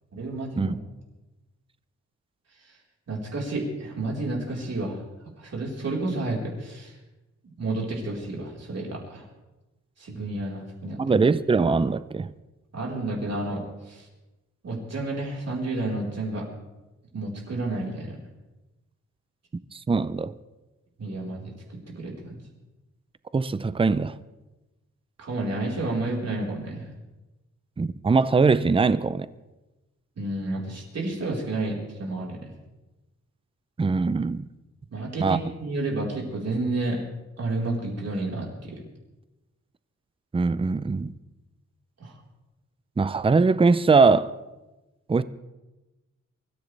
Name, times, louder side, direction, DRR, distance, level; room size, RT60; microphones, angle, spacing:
voice 1, 0.1-0.7 3.1-5.0 5.4-6.9 7.6-9.2 10.0-11.0 12.7-13.6 13.9-14.0 14.6-16.5 17.1-18.2 21.0-21.5 21.9-22.4 25.2-26.8 30.2-32.5 34.9-37.0 37.4-38.8 42.0-42.1, right 2 dB, 60° right, 4.3 m, -30 dB
voice 2, 11.0-12.3 19.7-20.3 23.3-24.2 27.8-29.3 33.8-34.5 35.2-35.4 40.3-41.1 43.0-44.3 45.1-45.2, right 4 dB, 20° right, 0.5 m, -21 dB
24.5 x 14.0 x 3.4 m
wide cardioid pair, 125°, 29 cm